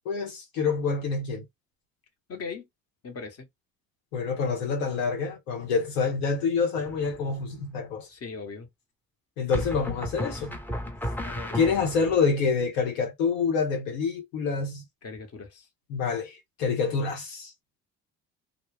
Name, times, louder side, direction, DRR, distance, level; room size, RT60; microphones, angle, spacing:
voice 1, 0.0-1.4 4.1-8.1 9.4-10.6 11.5-14.8 15.9-17.5, left 5 dB, 90° left, 0.9 m, -27 dB
voice 2, 2.3-2.7 3.0-3.5 8.1-8.7 11.2-11.9 15.0-15.7, left 4 dB, 40° left, 1.0 m, -39 dB
sound 1, 6.9-7.4 9.5-12.2, left 1 dB, 5° left, 0.5 m, -34 dB
2.2 x 2.0 x 3.2 m
hypercardioid pair, 65°, 37 cm